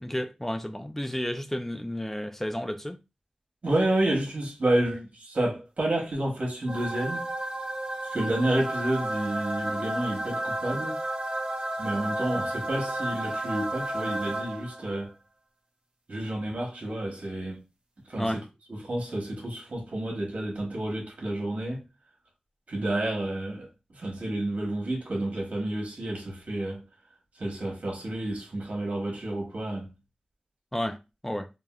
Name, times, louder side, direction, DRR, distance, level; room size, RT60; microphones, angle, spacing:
voice 1, 0.0-3.0 18.2-18.4 30.7-31.0 31.2-31.5, equal, 10° left, 0.4 m, -31 dB
voice 2, 3.6-7.2 8.1-11.0 11.8-15.1 16.1-17.6 18.1-18.3 18.7-21.8 22.7-23.7 24.0-26.8 27.4-29.9, right 1 dB, 80° right, 0.9 m, -30 dB
sound 1, 6.7-14.9, right 1 dB, 50° right, 0.7 m, -32 dB
3.4 x 2.1 x 2.2 m
wide cardioid pair, 45°, 2 cm